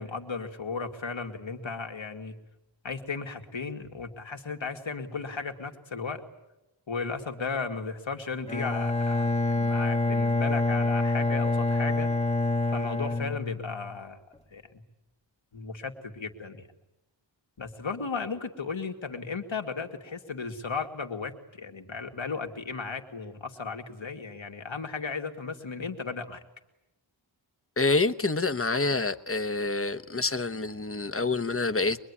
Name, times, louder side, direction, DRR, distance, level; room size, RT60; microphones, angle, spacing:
voice 1, 0.0-2.3 2.8-6.2 6.9-12.1 12.7-14.2 14.5-14.6 15.5-16.6 17.6-26.4, left 4 dB, 80° left, 4 dB, 2.4 m, -35 dB
Bowed string instrument, 8.5-14.0, left 2 dB, 15° left, 1.6 m, -26 dB
voice 2, 27.8-32.0, left 3 dB, 30° left, 10 dB, 1.1 m, -27 dB
24.0 x 22.0 x 9.8 m, 0.94 s
wide cardioid pair, 70°, 46 cm